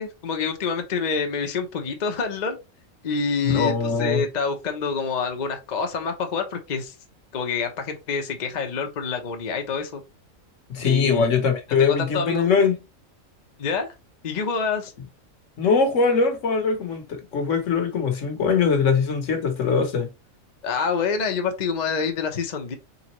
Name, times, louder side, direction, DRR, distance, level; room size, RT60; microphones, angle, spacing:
voice 1, 0.0-2.6 3.0-6.9 7.3-10.0 10.8-11.3 11.8-12.4 13.6-13.9 14.2-14.9 20.6-22.7, left 5 dB, 40° left, 0.7 m, -27 dB
voice 2, 3.4-4.2 10.7-12.7 15.6-20.1, left 5 dB, 65° left, 1.3 m, -21 dB
3.9 x 3.6 x 3.0 m
omnidirectional pair, 1.4 m